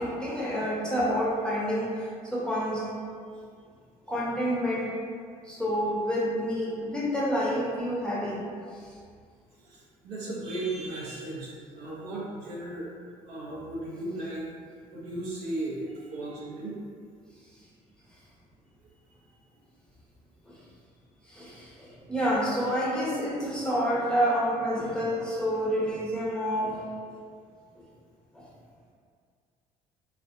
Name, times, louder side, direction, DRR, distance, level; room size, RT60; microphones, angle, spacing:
voice 1, 0.0-1.9 2.3-2.8 4.1-4.9 5.5-8.4 21.4-21.5 22.1-26.8, equal, 5° left, -6 dB, 0.7 m, -28 dB
voice 2, 9.6-12.9 13.3-14.5 14.9-16.8, right 2 dB, 70° right, -6 dB, 0.7 m, -36 dB
2.4 x 2.1 x 2.4 m, 2.1 s
hypercardioid pair, 60°, 18 cm